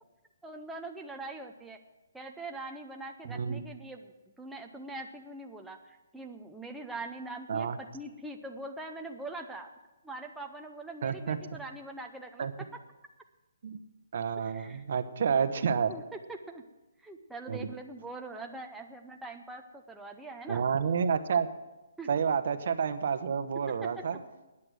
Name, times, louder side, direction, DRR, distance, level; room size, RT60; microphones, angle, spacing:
voice 1, 0.4-1.8 2.1-9.7 10.0-12.5 14.4-14.8 15.9-16.6 17.0-20.6 22.0-22.1 23.8-24.0, right 2 dB, 5° right, 2 dB, 0.6 m, -43 dB
voice 2, 3.3-3.6 7.5-7.8 11.0-11.4 12.4-12.5 13.6-13.8 14.1-15.9 17.5-17.7 20.5-21.5 22.1-24.2, right 6 dB, 55° right, 10 dB, 0.9 m, -29 dB
9.7 x 8.0 x 9.2 m, 1.1 s
hypercardioid pair, 155°, 0 cm